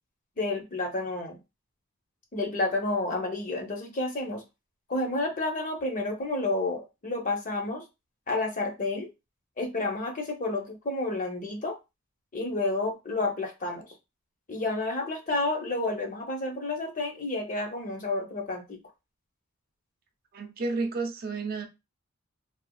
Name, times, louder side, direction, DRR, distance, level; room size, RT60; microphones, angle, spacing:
voice 1, 0.4-1.4 2.3-4.4 4.9-7.8 8.3-9.1 9.6-11.8 12.3-13.9 14.5-18.8, left 2 dB, 35° left, 0.7 m, -30 dB
voice 2, 20.3-21.7, right 3 dB, 45° right, 0.4 m, -31 dB
3.2 x 2.4 x 2.3 m
head